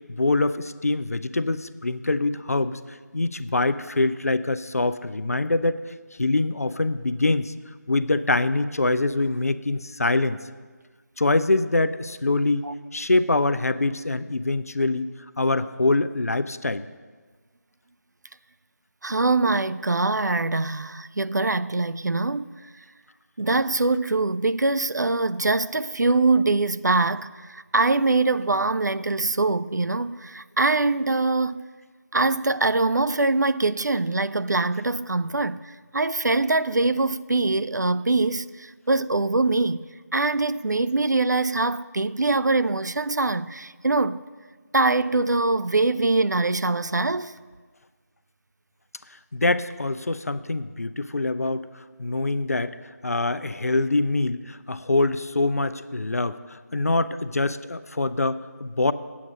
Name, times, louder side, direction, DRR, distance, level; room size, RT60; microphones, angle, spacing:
voice 1, 0.1-5.8 6.2-7.5 7.9-10.4 11.2-12.7 12.9-16.8 49.3-51.7 52.0-52.7 53.0-58.9, left 2 dB, 55° left, 0.4 m, -24 dB
voice 2, 19.0-22.5 23.4-31.6 32.1-39.9 40.1-44.2 44.7-47.3, right 3 dB, 80° right, 0.4 m, -23 dB
8.6 x 8.5 x 5.3 m
figure-of-eight pair, 165°, 10 cm